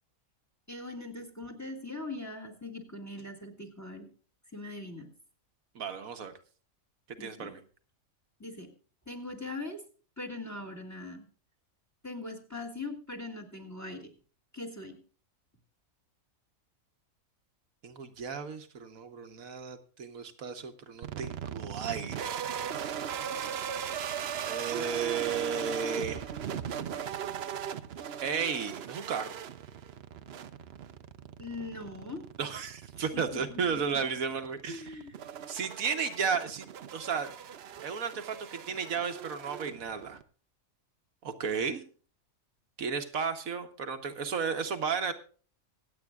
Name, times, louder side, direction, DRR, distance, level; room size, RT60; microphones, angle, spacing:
voice 1, 0.7-4.1 4.5-5.1 7.2-7.5 8.4-8.7 9.1-9.8 10.2-11.3 12.0-14.1 14.5-15.0 31.4-32.3 33.0-34.0 34.7-35.2, left 2 dB, 10° left, 5 dB, 2.0 m, -41 dB
voice 2, 5.7-6.3 7.1-7.6 17.8-22.3 24.5-26.2 28.2-29.3 32.4-34.9 35.5-37.3 37.8-40.2 41.2-41.8 42.8-45.1, right 6 dB, 75° right, 7 dB, 1.5 m, -34 dB
sound 1, 21.0-40.2, right 8 dB, 55° right, 0.8 m, -39 dB
25.0 x 8.4 x 2.3 m, 0.39 s
omnidirectional pair, 1.5 m